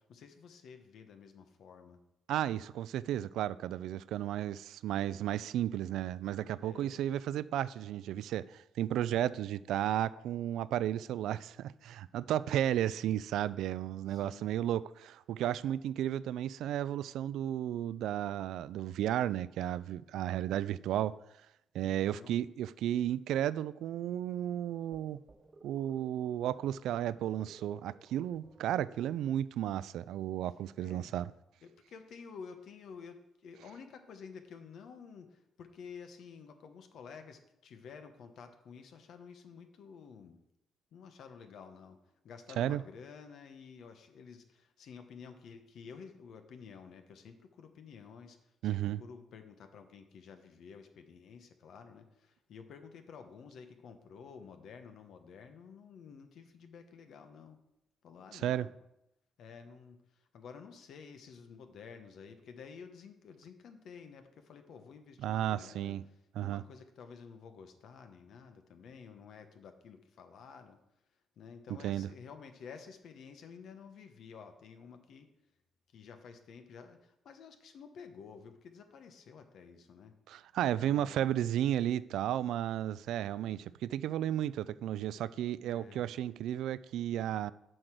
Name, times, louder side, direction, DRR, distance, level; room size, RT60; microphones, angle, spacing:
voice 1, 0.0-2.0 6.6-6.9 14.1-14.5 21.8-22.4 30.8-31.1 31.6-40.4 40.9-42.0 42.2-57.6 58.0-58.7 59.4-70.8 71.4-75.3 75.9-80.2 80.7-81.2 83.4-83.7 85.6-86.0, left 6 dB, 70° left, 1.1 m, -51 dB
voice 2, 2.3-21.2 21.7-25.2 25.6-31.3 42.6-42.8 48.6-49.0 58.3-58.7 65.2-66.1 66.4-66.6 71.8-72.1 80.3-87.5, right 11 dB, 85° right, 0.3 m, -33 dB
sound 1, 24.9-29.3, right 3 dB, 35° right, 1.1 m, -60 dB
7.7 x 5.1 x 6.0 m
cardioid pair, 90°, 0 cm